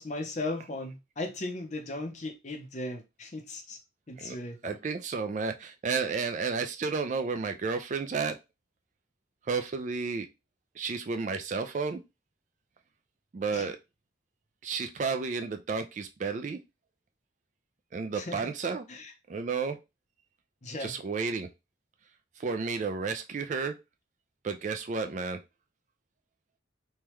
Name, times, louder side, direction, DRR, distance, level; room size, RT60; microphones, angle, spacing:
voice 1, 0.0-3.8 4.1-4.8 13.5-13.7 18.2-18.5 18.9-19.1 20.6-20.9, left 2 dB, 35° left, 0.6 m, -37 dB
voice 2, 4.6-8.4 9.4-10.3 10.7-12.0 13.3-13.8 14.6-16.6 17.9-18.8 19.3-19.8 20.8-21.5 22.4-23.8 24.4-25.4, right 5 dB, 40° right, 0.3 m, -32 dB
3.3 x 2.3 x 3.0 m
head